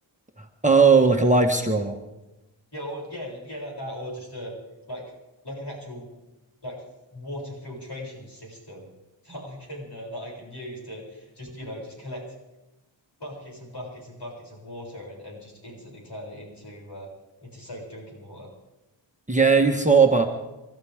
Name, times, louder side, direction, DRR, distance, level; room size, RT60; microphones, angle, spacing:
voice 1, 0.6-2.0 19.3-20.3, right 4 dB, 15° right, 2 dB, 1.5 m, -18 dB
voice 2, 2.7-4.5 4.9-5.0 5.4-6.1 6.6-6.8 7.1-8.9 9.2-12.2 13.2-17.1 17.4-18.5, equal, 60° left, -3 dB, 7.5 m, -38 dB
29.5 x 13.0 x 3.7 m, 1.0 s
wide cardioid pair, 50°, 46 cm